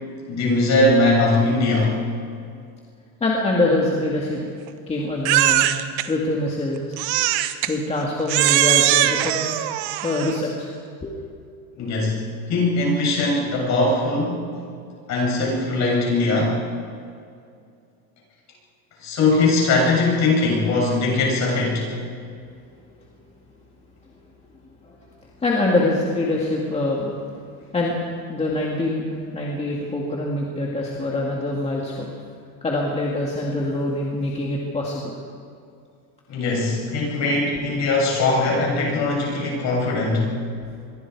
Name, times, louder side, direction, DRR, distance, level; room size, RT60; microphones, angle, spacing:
voice 1, 0.3-1.9 11.8-14.4 15.1-16.6 19.0-21.9 36.3-40.3, left 2 dB, 40° left, -2 dB, 7.7 m, -20 dB
voice 2, 3.2-4.5 4.9-5.7 6.1-7.0 7.7-9.6 10.0-10.7 11.0-11.1 24.8-25.0 25.4-27.1 27.7-28.0 28.3-29.0 29.3-32.1 32.6-35.2 37.5-37.6, left 2 dB, 15° left, -2 dB, 2.1 m, -24 dB
Crying sobbing, 5.2-6.1 7.0-7.7 8.3-10.4, right 13 dB, 60° right, 1.3 m, -20 dB
26.5 x 22.5 x 4.8 m, 2.3 s
cardioid pair, 160°, 43 cm